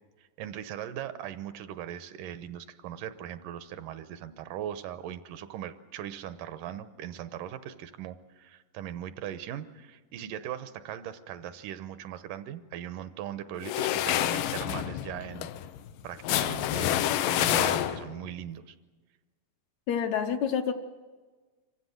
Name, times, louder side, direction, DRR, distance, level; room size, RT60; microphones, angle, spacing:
voice 1, 0.4-15.5 16.0-18.8, right 10 dB, 85° right, 12 dB, 2.4 m, -39 dB
sound 1, 13.6-18.3, left 12 dB, 90° left, 2.4 m, -28 dB
voice 2, 19.9-20.7, left 7 dB, 70° left, 7 dB, 2.0 m, -28 dB
26.0 x 15.5 x 7.8 m, 1.4 s
omnidirectional pair, 3.8 m